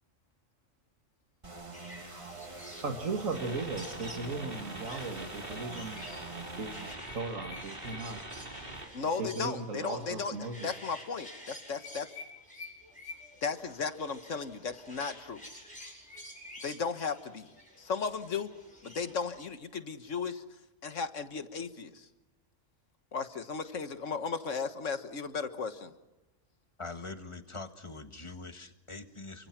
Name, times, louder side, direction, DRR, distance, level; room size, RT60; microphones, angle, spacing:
sound 1, 1.4-7.0, right 3 dB, 25° right, 1.7 m, -45 dB
sound 2, 1.7-19.5, left 1 dB, 5° left, 7.7 m, -50 dB
voice 1, 2.8-6.0 6.6-8.2 9.2-10.7, right 3 dB, 90° right, 4 dB, 2.4 m, -37 dB
sound 3, 3.3-8.9, right 1 dB, 45° right, 4.4 m, -44 dB
voice 2, 8.9-12.1 13.4-15.4 16.6-17.5 17.8-18.5 18.8-20.4 20.8-22.1 23.1-25.9, left 5 dB, 70° left, 9 dB, 1.7 m, -35 dB
voice 3, 26.8-29.5, left 3 dB, 25° left, 7 dB, 1.7 m, -43 dB
29.0 x 25.0 x 6.0 m, 1.0 s
omnidirectional pair, 1.3 m